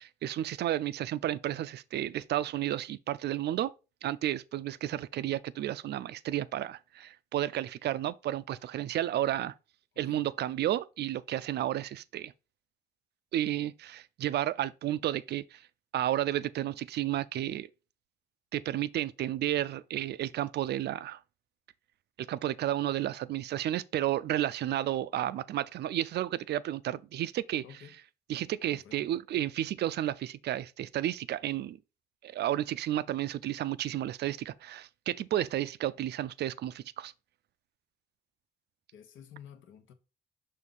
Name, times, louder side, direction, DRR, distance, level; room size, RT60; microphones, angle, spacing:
voice 1, 0.0-3.7 4.0-9.5 10.0-12.3 13.3-15.6 15.9-17.7 18.5-21.2 22.2-27.6 28.3-31.8 32.2-37.1, right 12 dB, 55° right, 0.4 m, -32 dB
voice 2, 27.6-28.0 28.8-29.1 38.9-39.9, left 8 dB, 80° left, 1.1 m, -51 dB
6.4 x 2.7 x 5.4 m
cardioid pair, 90°, 20 cm